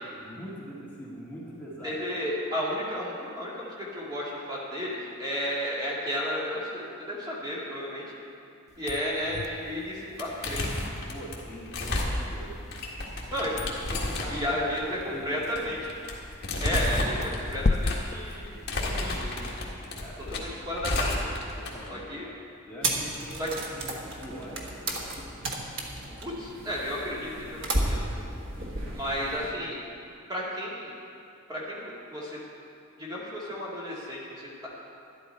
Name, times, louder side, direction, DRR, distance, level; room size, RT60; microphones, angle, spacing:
voice 1, 0.0-2.0 11.1-12.5 13.4-13.6 13.9-14.6 15.1-15.5 19.8-20.7 21.6-23.9 24.2-25.2 29.0-29.2, equal, 10° left, -8 dB, 1.9 m, -43 dB
voice 2, 1.8-8.1 8.8-10.7 13.3-13.5 14.3-15.9 16.6-19.5 20.3-21.4 21.9-22.3 23.4-23.5 26.2-28.0 28.9-29.8 30.3-30.9 31.5-32.4 33.0-34.7, equal, 20° right, -6 dB, 2.0 m, -33 dB
sound 1, 8.7-19.2, left 3 dB, 35° left, 0.3 m, -36 dB
sound 2, 9.6-9.9 10.1-21.9, left 2 dB, 50° left, 1.7 m, -32 dB
sound 3, 22.8-29.5, right 1 dB, 60° right, 1.4 m, -33 dB
12.0 x 11.0 x 4.4 m, 2.6 s
head